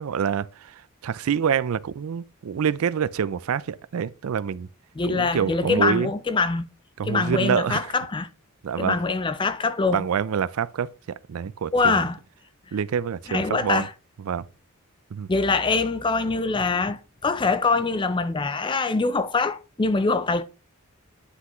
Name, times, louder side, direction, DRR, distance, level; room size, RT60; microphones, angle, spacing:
voice 1, 0.0-4.7 5.1-6.1 7.0-8.0 8.6-9.0 9.9-10.9 11.3-12.1 12.7-13.9 14.3-14.4 15.1-15.3, right 7 dB, 75° right, 0.4 m, -26 dB
voice 2, 5.0-6.7 7.0-8.3 8.8-10.1 11.7-12.2 13.3-13.9 15.3-20.4, left 3 dB, 20° left, 0.4 m, -24 dB
9.7 x 5.7 x 3.0 m
head